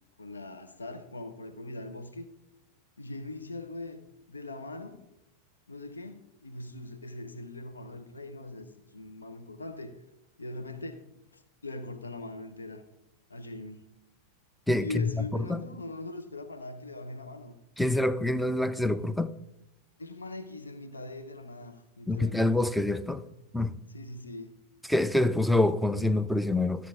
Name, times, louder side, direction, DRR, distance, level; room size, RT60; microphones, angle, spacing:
voice 1, 0.2-2.3 3.0-5.0 5.7-10.0 10.4-12.8 13.3-13.9 14.7-17.6 20.0-22.4 23.9-24.6, left 2 dB, 75° left, 0.8 m, -41 dB
voice 2, 14.7-15.2 15.5-15.6 17.8-19.3 22.1-23.2 23.5-23.8 24.9-26.9, left 2 dB, ahead, 0.5 m, -26 dB
13.0 x 8.2 x 3.7 m
figure-of-eight pair, 90°, 0 cm